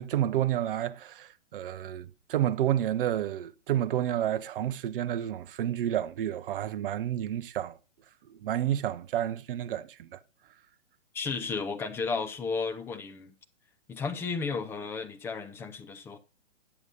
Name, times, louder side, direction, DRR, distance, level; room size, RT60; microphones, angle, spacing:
voice 1, 0.0-7.8 8.3-10.2, right 11 dB, 45° right, 0.9 m, -30 dB
voice 2, 11.1-13.3 13.9-16.2, left 4 dB, 5° left, 0.5 m, -33 dB
9.8 x 7.1 x 5.4 m
hypercardioid pair, 135°, 38 cm